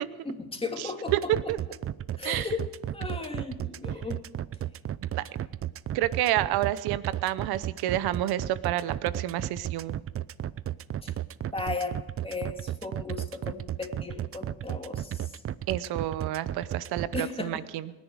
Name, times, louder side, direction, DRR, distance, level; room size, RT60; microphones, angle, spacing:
voice 1, 0.2-1.3 2.2-2.6 2.9-4.2 11.0-11.1 11.5-12.0 12.2-15.3 17.1-17.6, left 4 dB, 15° left, 3 dB, 2.7 m, -35 dB
voice 2, 0.8-1.6 2.2-2.5 5.2-5.3 5.9-10.0 15.7-17.9, right 13 dB, 85° right, 16 dB, 0.8 m, -29 dB
sound 1, 1.1-17.2, right 11 dB, 40° right, 0.5 m, -33 dB
27.5 x 10.5 x 4.8 m, 1.2 s
cardioid pair, 105°, 37 cm